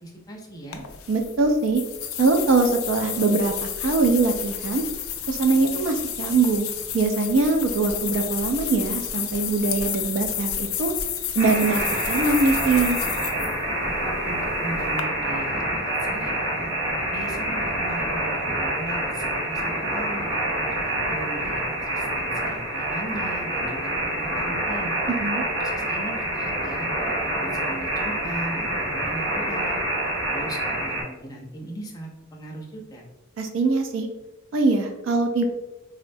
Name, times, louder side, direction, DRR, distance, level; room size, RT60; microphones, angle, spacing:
voice 1, 0.0-0.8 14.2-16.7 17.1-20.3 20.7-24.9 25.6-26.9 27.2-29.8 30.3-33.0, right 1 dB, 20° left, 0 dB, 0.4 m, -38 dB
sound 1, 0.7-15.0, left 9 dB, 85° left, 0.4 m, -31 dB
voice 2, 1.1-1.8 2.2-4.8 5.3-6.7 6.9-10.9 11.4-13.0 25.1-25.4 33.4-34.1 34.5-35.4, right 3 dB, 65° right, 5 dB, 0.3 m, -22 dB
sound 2, 11.4-31.0, right 1 dB, 85° right, 1.3 m, -27 dB
3.7 x 2.1 x 2.6 m, 1.0 s
head